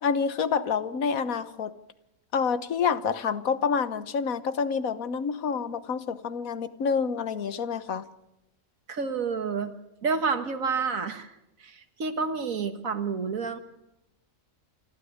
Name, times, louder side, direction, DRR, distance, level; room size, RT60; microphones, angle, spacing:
voice 1, 0.0-1.7 2.3-8.0, left 6 dB, 75° left, 13 dB, 1.5 m, -28 dB
voice 2, 8.9-9.7 10.0-11.3 11.6-13.6, right 5 dB, 70° right, 9 dB, 1.9 m, -29 dB
27.5 x 13.0 x 9.5 m, 0.88 s
omnidirectional pair, 1.5 m